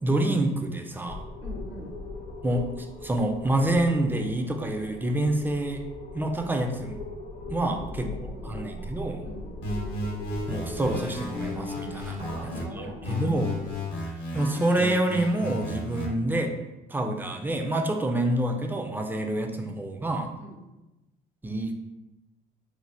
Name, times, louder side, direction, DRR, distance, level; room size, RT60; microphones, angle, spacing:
voice 1, 0.0-1.2 2.4-5.8 6.1-7.0 7.5-8.1 8.4-9.2 10.5-12.2 12.7-13.6 14.3-16.6 16.9-20.3 21.4-21.7, right 1 dB, 10° right, 4 dB, 0.3 m, -27 dB
sound 1, 1.1-13.8, left 2 dB, 45° left, 0.6 m, -40 dB
voice 2, 1.4-1.9 7.7-8.6 9.2-9.5 12.2-13.8 20.4-20.6, equal, 80° right, -2 dB, 0.9 m, -43 dB
sound 2, 9.6-12.6 13.0-16.1, left 1 dB, 75° left, 0.8 m, -33 dB
3.1 x 2.0 x 2.7 m, 0.99 s
supercardioid pair, 80°, 19 cm